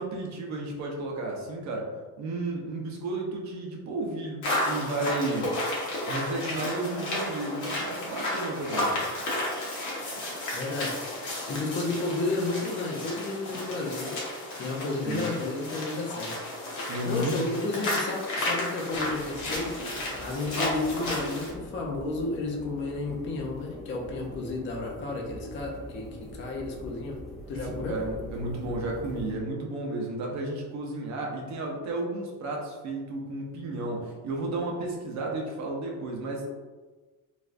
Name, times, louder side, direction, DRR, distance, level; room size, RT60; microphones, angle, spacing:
voice 1, 0.0-1.9 2.2-5.5 6.0-9.1 15.0-15.3 16.8-17.5 27.8-36.5, right 2 dB, 50° right, 0 dB, 0.6 m, -33 dB
sound 1, 4.4-21.5, left 1 dB, 50° left, 0.9 m, -32 dB
voice 2, 10.5-11.0 11.5-14.2 14.6-16.3 17.0-19.7 20.2-27.2 27.5-28.0, left 2 dB, 35° left, 0 dB, 0.4 m, -32 dB
sound 2, 18.9-29.3, equal, ahead, 0.7 m, -43 dB
3.2 x 2.5 x 2.4 m, 1.3 s
cardioid pair, 175°, 37 cm